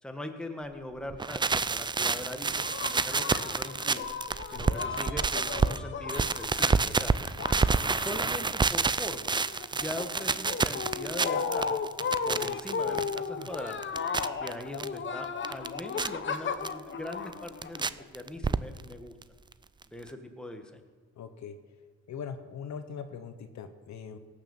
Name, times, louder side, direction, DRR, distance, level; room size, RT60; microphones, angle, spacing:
voice 1, 0.0-2.5 2.8-4.1 4.5-7.1 8.0-9.3 9.7-11.8 12.2-13.8 14.4-19.2 19.9-20.8, left 1 dB, 5° left, 5 dB, 1.6 m, -41 dB
sound 1, 1.1-5.8 6.1-14.9 15.2-16.1 16.6-16.7 17.1-17.9 18.1-18.9 19.2-19.3 19.5-19.6 19.8-19.9, right 4 dB, 15° right, 0.4 m, -28 dB
sound 2, 2.6-8.8 9.1-18.0, left 5 dB, 40° left, 1.0 m, -35 dB
voice 2, 21.2-21.5 22.1-24.2, left 7 dB, 65° left, 9 dB, 1.2 m, -41 dB
17.5 x 6.7 x 7.3 m, 1.5 s
cardioid pair, 90°, 30 cm